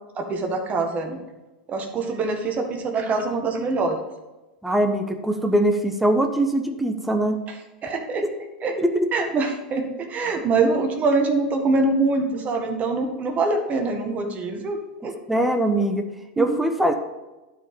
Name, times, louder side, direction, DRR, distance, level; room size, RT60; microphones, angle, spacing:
voice 1, 0.2-1.2 1.7-4.0 7.5-7.6 7.8-8.2 8.6-8.7 9.1-15.1 16.4-16.6, right 3 dB, 30° right, 4 dB, 1.6 m, -24 dB
voice 2, 4.6-7.4 8.8-9.1 15.3-16.1 16.4-17.0, right 1 dB, 5° right, 5 dB, 1.1 m, -22 dB
11.5 x 4.9 x 5.3 m, 1.1 s
hypercardioid pair, 95°, 5 cm